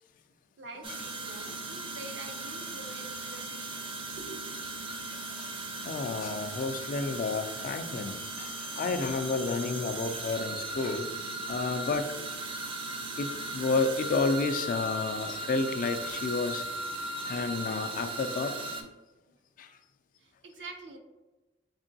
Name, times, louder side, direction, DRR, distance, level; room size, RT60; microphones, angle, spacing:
voice 1, 0.6-3.8 4.2-4.5 19.3-19.4 19.7-19.8 20.2-21.0, right 2 dB, 75° right, 0.6 m, -46 dB
sound 1, 0.8-18.8, right 2 dB, 30° right, 0.4 m, -37 dB
voice 2, 5.1-11.1 11.5-12.1 13.2-16.6 17.2-18.5 19.6-19.7, left 3 dB, 45° left, 0.3 m, -31 dB
3.7 x 3.3 x 2.6 m
head